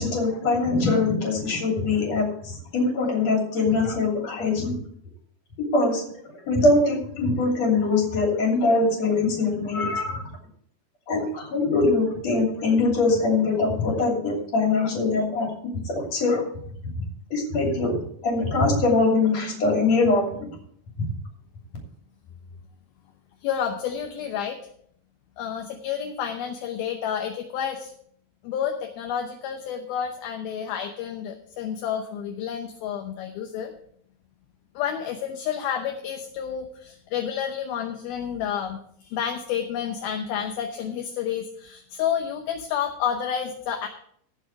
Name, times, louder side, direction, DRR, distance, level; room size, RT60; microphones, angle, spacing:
voice 1, 0.0-4.8 5.7-10.3 11.1-16.4 17.3-20.3 21.0-21.1, left 3 dB, 45° left, 0 dB, 3.8 m, -23 dB
voice 2, 23.4-24.6 25.4-27.9 28.4-33.7 34.8-43.9, left 8 dB, 75° left, 4 dB, 2.6 m, -30 dB
16.5 x 6.2 x 4.8 m, 0.64 s
omnidirectional pair, 4.7 m